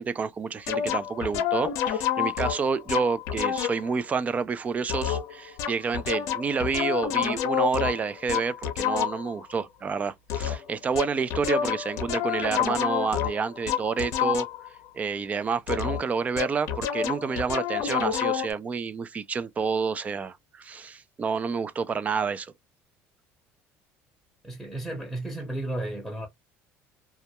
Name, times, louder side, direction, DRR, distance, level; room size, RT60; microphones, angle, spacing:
voice 1, 0.0-14.5 14.9-22.5, right 5 dB, 25° right, 0.3 m, -29 dB
sound 1, 0.7-3.9 4.9-9.4 10.3-10.7 11.0-14.8 15.7-18.5, left 9 dB, 70° left, 0.5 m, -28 dB
voice 2, 24.4-26.3, right 1 dB, ahead, 0.8 m, -33 dB
2.3 x 2.1 x 2.8 m
cardioid pair, 110°, 5 cm